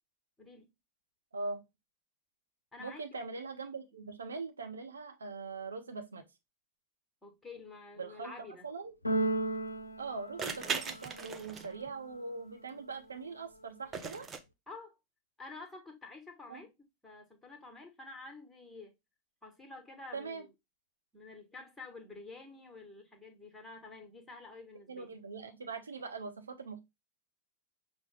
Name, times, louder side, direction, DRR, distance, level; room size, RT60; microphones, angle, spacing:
voice 1, 0.4-0.7 2.7-3.0 3.9-4.1 7.2-8.7 14.7-15.0 15.4-16.7 17.0-18.9 19.4-20.5 21.1-25.1, left 3 dB, 5° left, 1.2 m, -49 dB
voice 2, 2.8-6.3 8.0-8.9 10.0-14.3 16.5-16.6 20.1-20.5 24.9-26.8, right 4 dB, 75° right, 0.8 m, -42 dB
Keyboard (musical), 9.0-11.2, right 2 dB, 80° left, 0.4 m, -34 dB
sound 1, 9.2-9.3 10.4-11.9 13.9-14.4, right 5 dB, 20° right, 0.6 m, -38 dB
6.0 x 2.1 x 3.3 m
figure-of-eight pair, 90°, 0 cm